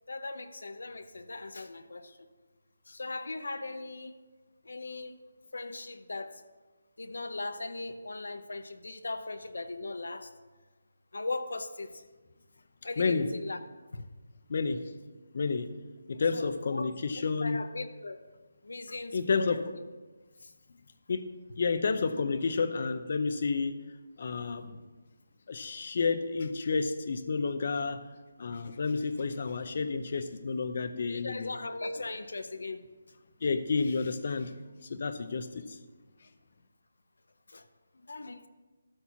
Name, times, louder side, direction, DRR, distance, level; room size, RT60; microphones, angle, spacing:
voice 1, 0.1-2.3 2.9-4.1 4.6-5.2 5.5-6.4 7.0-10.3 11.1-12.0 12.8-13.6 13.9-14.1 16.3-18.2 18.6-19.6 20.4-20.5 31.1-32.8 37.5-37.7 37.9-38.5, left 2 dB, 80° left, 10 dB, 0.7 m, -39 dB
voice 2, 13.0-13.3 14.5-14.8 15.3-15.7 16.1-17.6 19.1-19.6 21.1-21.2 21.6-23.7 24.2-24.7 25.5-28.0 28.4-31.6 33.4-34.5 34.9-35.6, left 4 dB, 40° left, 11 dB, 0.6 m, -30 dB
12.5 x 4.4 x 5.8 m, 1.3 s
hypercardioid pair, 175°, 0 cm